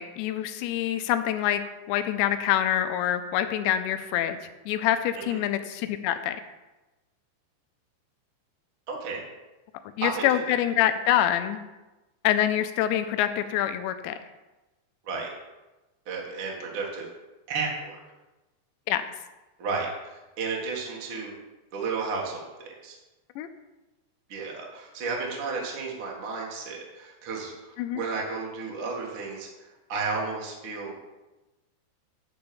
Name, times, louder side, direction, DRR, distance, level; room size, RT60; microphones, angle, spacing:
voice 1, 0.0-1.6 1.9-4.4 4.7-6.4 10.0-11.6 12.2-14.2 18.9-19.0 23.4-23.5 27.8-28.0, left 11 dB, 80° left, 9 dB, 2.7 m, -25 dB
voice 2, 8.9-9.2 10.0-10.5 15.0-15.3 16.0-17.1 17.5-18.0 19.6-21.3 21.7-23.0 24.3-27.5 27.9-29.5 29.9-30.9, right 4 dB, 55° right, -2 dB, 1.4 m, -32 dB
10.5 x 4.6 x 6.9 m, 1.1 s
omnidirectional pair, 5.3 m